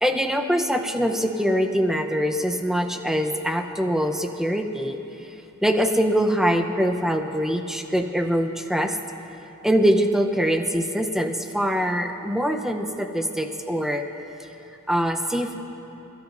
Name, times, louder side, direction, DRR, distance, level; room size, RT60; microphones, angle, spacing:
voice 1, 0.0-5.0 5.6-8.9 9.6-14.0 14.9-15.6, equal, ahead, 4 dB, 0.7 m, -23 dB
27.0 x 14.0 x 2.6 m, 3.0 s
head